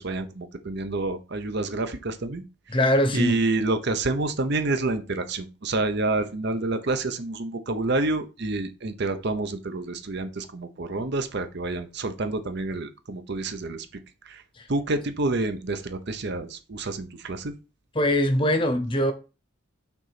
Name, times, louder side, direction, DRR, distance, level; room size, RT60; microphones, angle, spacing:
voice 1, 0.0-2.4 3.1-13.9 14.3-14.4 14.7-17.5, right 2 dB, 50° right, 0.8 m, -28 dB
voice 2, 2.7-3.4 17.9-19.1, left 1 dB, 25° left, 0.9 m, -22 dB
5.9 x 3.9 x 5.8 m
head